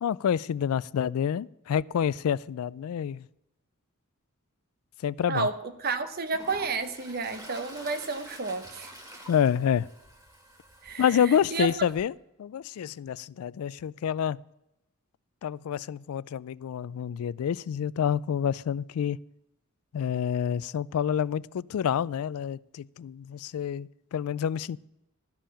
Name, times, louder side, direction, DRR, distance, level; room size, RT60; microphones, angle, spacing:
voice 1, 0.0-3.2 5.0-5.5 9.3-9.9 11.0-12.1 12.4-14.4 15.4-19.2 19.9-24.8, left 8 dB, 75° left, 0.3 m, -28 dB
Toilet flush, 5.2-5.3 5.8-12.0, right 1 dB, 15° right, 1.9 m, -48 dB
voice 2, 5.3-8.9 10.8-11.7, right 4 dB, 45° right, 0.9 m, -31 dB
13.0 x 5.6 x 8.7 m
head